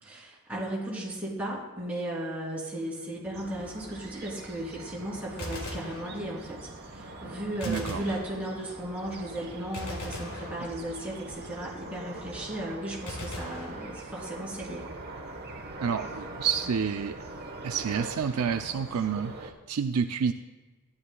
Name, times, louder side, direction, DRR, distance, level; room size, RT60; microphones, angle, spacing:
voice 1, 0.0-14.9, right 1 dB, 5° right, -7 dB, 3.3 m, -36 dB
sound 1, 3.3-19.5, right 2 dB, 45° right, 1.2 m, -43 dB
Gunshot gunfire, 5.4-6.6 7.6-8.8 9.7-11.2 13.1-14.4, left 1 dB, 80° left, 2.3 m, -40 dB
voice 2, 7.7-8.1 15.8-17.1 17.6-20.3, right 6 dB, 75° right, 6 dB, 0.5 m, -29 dB
15.0 x 11.0 x 2.3 m, 1.2 s
head